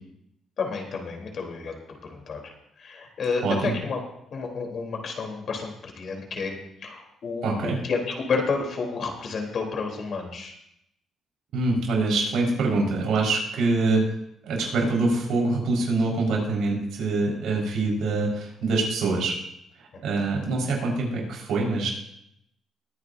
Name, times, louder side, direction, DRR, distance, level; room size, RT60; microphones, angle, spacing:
voice 1, 0.6-1.7 2.1-2.5 2.8-4.0 4.3-10.5, left 4 dB, 55° left, 1 dB, 3.5 m, -30 dB
voice 2, 7.4-7.8 11.5-14.0 14.4-19.4 19.8-21.9, right 3 dB, 80° right, -1 dB, 4.8 m, -25 dB
21.5 x 9.8 x 2.7 m, 0.76 s
cardioid pair, 90°, 0 cm